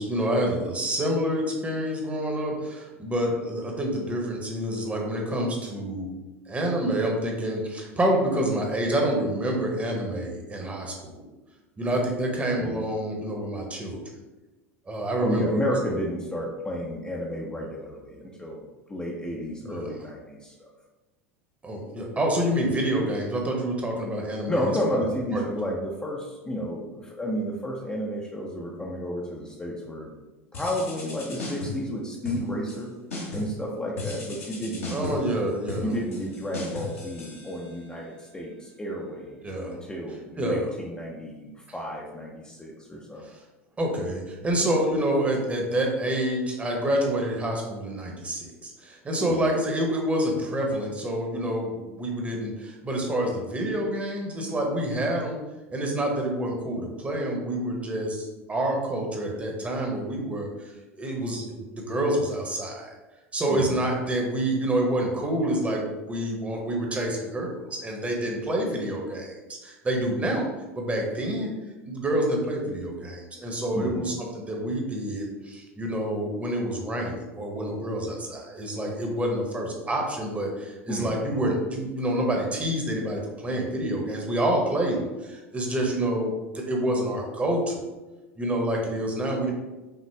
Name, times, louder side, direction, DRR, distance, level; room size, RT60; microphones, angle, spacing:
voice 1, 0.0-6.1 6.5-11.3 11.8-14.0 14.9-15.6 19.6-19.9 21.6-25.0 25.3-25.4 34.9-35.9 39.4-39.8 40.4-40.7 43.8-55.4 55.7-62.9 63.3-69.3 69.6-70.5 70.7-71.5 71.8-87.8 88.4-89.5, right 1 dB, 20° right, 0 dB, 1.1 m, -27 dB
voice 2, 15.2-18.6 18.9-20.7 24.5-30.2 30.5-32.9 33.3-35.2 35.8-43.2 49.2-49.5 63.5-63.8 73.7-74.1 80.9-81.4, equal, 10° left, -3 dB, 0.7 m, -32 dB
sound 1, 30.5-31.9 32.2-32.8 33.1-33.6 34.0-38.0, left 3 dB, 75° left, 1.3 m, -37 dB
5.8 x 2.4 x 3.4 m, 1.1 s
figure-of-eight pair, 80°, 7 cm